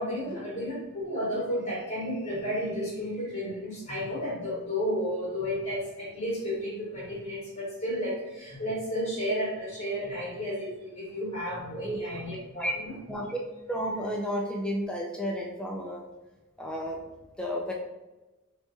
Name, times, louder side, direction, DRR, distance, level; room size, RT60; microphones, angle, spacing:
voice 1, 0.0-13.0, equal, 35° left, -10 dB, 1.4 m, -32 dB
voice 2, 11.8-12.2 12.6-12.7 13.1-13.4 13.7-16.1 16.6-17.0 17.4-17.7, equal, 5° left, -1 dB, 0.4 m, -32 dB
3.4 x 2.9 x 2.7 m, 1.1 s
head